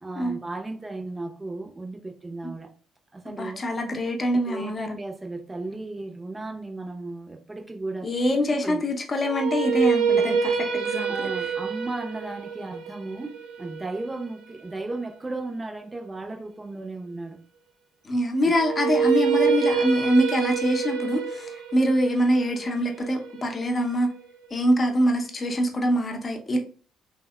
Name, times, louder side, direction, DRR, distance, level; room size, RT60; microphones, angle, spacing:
voice 1, 0.0-2.7 3.1-3.7 4.5-8.4 8.6-8.8 10.1-10.4 11.1-17.4 18.4-18.5, right 2 dB, 20° right, 0.6 m, -35 dB
voice 2, 3.3-5.0 8.0-11.3 18.0-24.1 24.5-26.6, equal, 35° left, 0.7 m, -24 dB
sound 1, 9.2-15.3 18.6-24.6, right 6 dB, 70° right, 0.4 m, -27 dB
3.3 x 2.1 x 2.2 m
hypercardioid pair, 45°, 0 cm